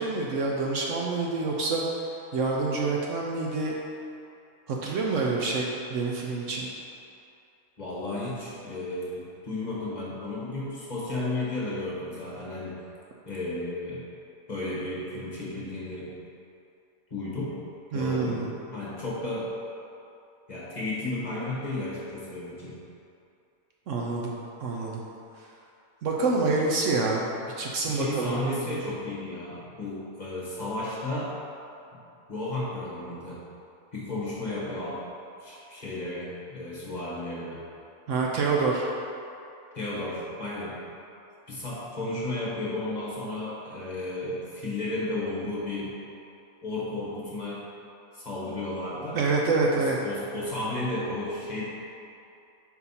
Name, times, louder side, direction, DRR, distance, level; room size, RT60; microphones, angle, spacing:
voice 1, 0.0-1.8 2.3-3.8 4.7-6.7 17.9-18.5 23.9-24.3 24.6-25.0 26.0-28.8 38.1-38.8 49.1-50.0, right 3 dB, 70° right, -2 dB, 0.9 m, -27 dB
voice 2, 7.8-12.8 13.2-14.0 14.5-16.1 17.1-17.6 17.9-18.4 18.7-19.5 20.5-22.8 27.8-31.3 32.3-33.4 33.9-35.0 35.4-37.6 39.7-40.8 41.5-45.9 46.6-47.6 48.1-49.2 49.8-51.7, left 2 dB, 35° left, -7 dB, 1.1 m, -33 dB
5.3 x 4.6 x 4.1 m, 2.7 s
omnidirectional pair, 1.5 m